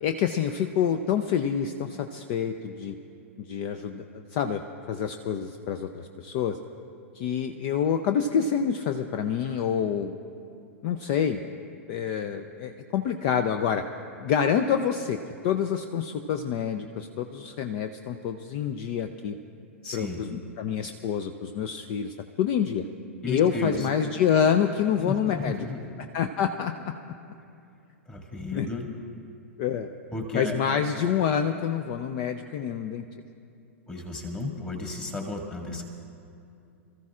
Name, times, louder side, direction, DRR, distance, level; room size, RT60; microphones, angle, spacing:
voice 1, 0.0-2.9 3.5-4.6 4.9-6.6 7.1-10.2 10.8-11.4 11.9-13.8 14.2-15.2 15.4-19.4 19.9-22.9 23.3-25.7 26.1-26.7 28.5-28.7 29.6-29.9 30.3-33.0, left 8 dB, 40° left, 8 dB, 0.6 m, -27 dB
voice 2, 19.8-20.2 23.2-23.9 25.1-25.8 28.1-28.9 30.1-30.6 33.9-35.8, left 2 dB, 15° left, 2 dB, 2.0 m, -33 dB
27.5 x 14.5 x 2.5 m, 2.6 s
figure-of-eight pair, 100°, 7 cm